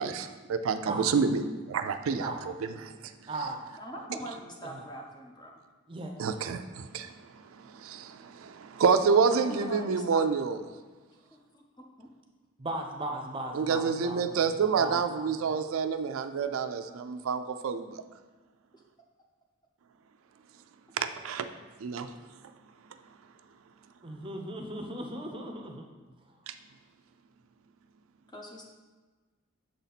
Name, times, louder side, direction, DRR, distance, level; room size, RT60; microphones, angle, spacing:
voice 1, 0.0-3.1 6.2-7.1 7.6-10.6 13.5-18.0 21.0-21.5 21.8-22.1 26.5-26.6, right 5 dB, 80° right, 8 dB, 0.4 m, -28 dB
voice 2, 3.3-3.7 4.6-4.8 5.9-6.1 12.6-15.6 24.0-25.9, right 2 dB, 25° right, 3 dB, 0.6 m, -37 dB
voice 3, 3.8-5.5 9.3-10.2 11.2-12.1 28.3-28.6, equal, 20° left, 0 dB, 0.7 m, -43 dB
6.6 x 4.0 x 4.1 m, 1.3 s
head